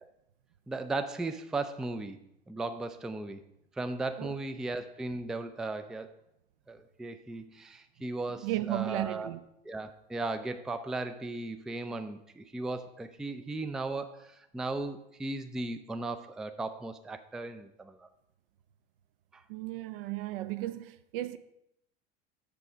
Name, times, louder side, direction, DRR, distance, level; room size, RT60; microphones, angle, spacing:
voice 1, 0.7-2.2 2.5-3.4 3.8-6.1 6.7-9.3 9.6-18.1 19.3-19.4, right 2 dB, ahead, 0.4 m, -36 dB
voice 2, 8.4-9.4 19.5-21.4, right 15 dB, 60° right, 0.6 m, -34 dB
6.9 x 6.9 x 4.9 m
figure-of-eight pair, 75°, 32 cm